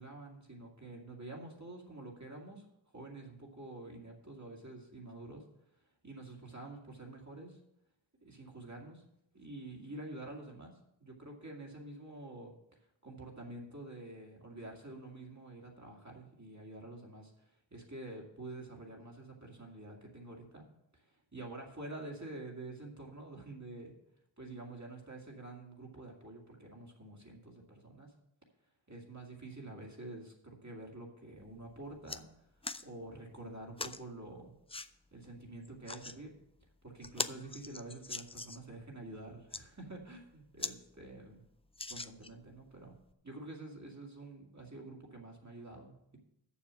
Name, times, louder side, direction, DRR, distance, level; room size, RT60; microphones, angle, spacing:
voice 1, 0.0-2.6 2.9-5.5 6.0-7.6 8.2-9.0 9.3-10.7 11.0-12.5 13.0-20.7 20.9-24.0 24.4-28.2 28.9-32.3 32.8-34.5 35.1-36.3 36.8-41.4 41.9-43.0 43.2-46.2, right 2 dB, 40° right, -1 dB, 2.3 m, -48 dB
sound 1, 31.4-31.5 31.8-32.2 32.6-32.8 33.8-34.0 34.7-34.9 35.6-36.2 36.6-36.7 37.0-38.7 39.3-39.6 40.2-40.3 40.6-40.8 41.1-41.2 41.7-42.5 43.1-43.2, left 3 dB, 15° left, 0.3 m, -41 dB
7.1 x 6.8 x 7.4 m, 0.80 s
wide cardioid pair, 50°, 44 cm